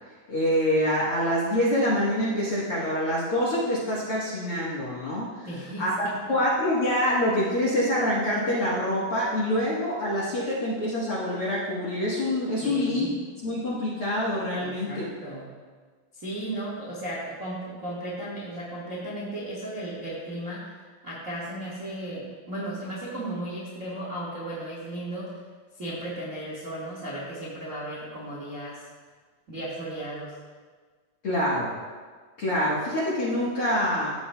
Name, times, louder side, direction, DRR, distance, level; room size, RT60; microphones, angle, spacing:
voice 1, 0.3-5.5 5.8-13.1 13.4-15.0 31.2-31.7 32.4-34.1, left 1 dB, 55° left, -8 dB, 1.6 m, -26 dB
voice 2, 5.4-6.4 12.6-13.1 14.6-15.5 16.1-25.4 25.8-28.9 29.5-30.4, right 1 dB, 40° right, -6 dB, 1.0 m, -35 dB
14.0 x 8.1 x 2.3 m, 1.5 s
omnidirectional pair, 4.3 m